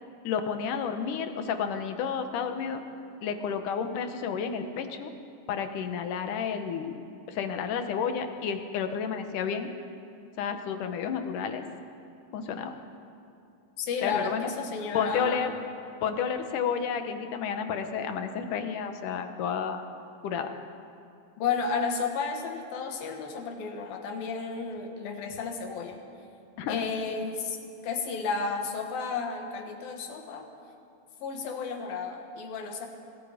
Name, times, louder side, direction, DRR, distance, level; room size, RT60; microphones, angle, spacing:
voice 1, 0.2-2.8 3.2-5.1 5.5-7.0 7.3-9.7 10.4-11.6 12.3-12.7 14.0-14.5 14.9-15.5 16.0-19.8 20.2-20.5 26.6-26.8, left 7 dB, 70° left, 7 dB, 2.6 m, -31 dB
voice 2, 13.8-15.5 21.4-26.0 26.7-27.6 27.8-30.5 31.2-32.9, left 5 dB, 90° left, 4 dB, 3.6 m, -32 dB
26.5 x 21.0 x 5.1 m, 2.7 s
omnidirectional pair, 4.0 m